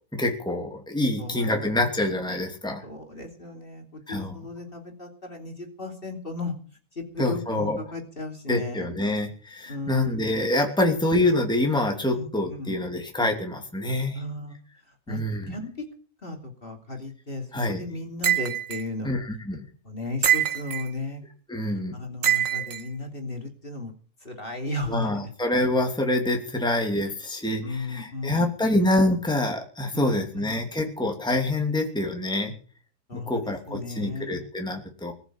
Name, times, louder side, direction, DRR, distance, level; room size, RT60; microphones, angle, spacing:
voice 1, 0.1-2.8 4.1-4.4 7.2-7.8 8.5-14.2 15.1-15.5 17.5-17.8 19.0-19.6 21.5-21.9 24.9-32.5 33.1-35.1, left 1 dB, 5° left, 3 dB, 2.8 m, -26 dB
voice 2, 1.2-2.4 2.8-6.5 6.9-8.9 9.7-10.2 12.1-12.8 14.1-14.6 14.9-15.2 15.5-15.7 16.2-19.2 19.8-21.2 21.9-23.9 24.2-25.1 27.6-28.8 29.9-30.6 33.1-34.5, left 2 dB, 35° left, 3 dB, 3.2 m, -35 dB
sound 1, 18.2-18.8 20.2-20.9 22.2-22.8, right 11 dB, 60° right, 1.6 m, -24 dB
20.5 x 7.2 x 9.1 m, 0.41 s
omnidirectional pair, 1.7 m